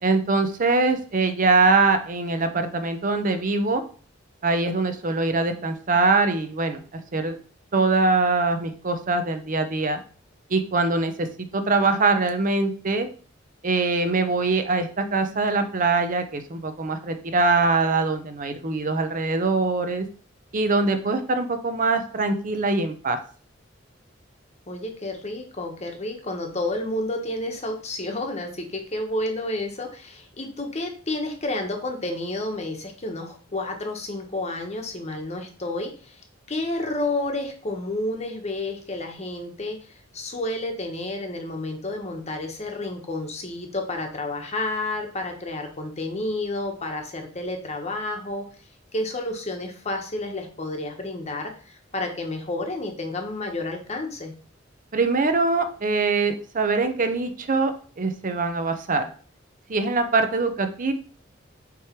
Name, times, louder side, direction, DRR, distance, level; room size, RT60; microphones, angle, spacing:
voice 1, 0.0-3.8 4.4-7.4 7.7-10.0 10.5-11.3 11.5-13.1 13.6-20.1 20.5-23.2 54.9-59.0 59.7-60.9, right 3 dB, 45° right, 8 dB, 0.7 m, -23 dB
voice 2, 24.7-36.2 36.5-48.4 48.9-54.3, left 2 dB, 35° left, 3 dB, 1.2 m, -30 dB
7.0 x 3.2 x 4.5 m, 0.41 s
head